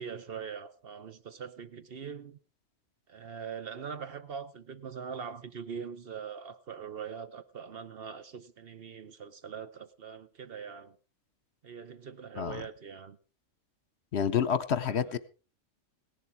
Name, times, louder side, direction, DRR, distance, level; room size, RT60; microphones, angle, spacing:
voice 1, 0.0-2.4 3.1-11.0 11.6-13.2 14.8-15.2, right 6 dB, 55° right, 1.1 m, -42 dB
voice 2, 14.1-15.2, left 7 dB, 65° left, 1.1 m, -28 dB
17.5 x 11.0 x 4.7 m
omnidirectional pair, 1.3 m